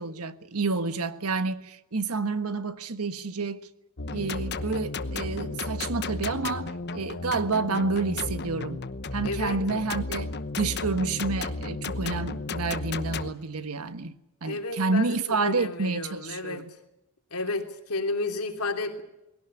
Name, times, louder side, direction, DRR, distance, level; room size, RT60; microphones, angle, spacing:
voice 1, 0.0-3.7 4.1-8.8 9.1-16.6, right 3 dB, 85° right, 1.4 m, -29 dB
sound 1, 4.0-13.3, left 3 dB, 50° left, 1.0 m, -33 dB
voice 2, 9.2-9.6 14.4-15.2 15.5-16.7 17.3-19.0, left 3 dB, 85° left, 3.1 m, -32 dB
20.5 x 17.5 x 9.8 m
head